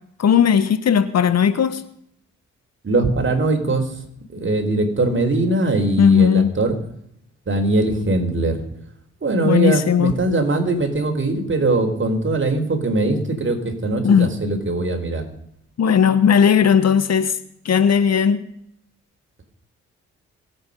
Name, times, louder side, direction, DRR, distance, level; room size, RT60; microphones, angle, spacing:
voice 1, 0.2-1.8 6.0-6.6 9.4-10.1 14.0-14.3 15.8-17.3 17.6-18.4, left 7 dB, 60° left, 1.3 m, -16 dB
voice 2, 2.8-3.9 4.3-6.8 7.5-8.6 9.2-15.2, right 2 dB, 40° right, 4.5 m, -21 dB
26.5 x 8.9 x 5.4 m
supercardioid pair, 45°, 30 cm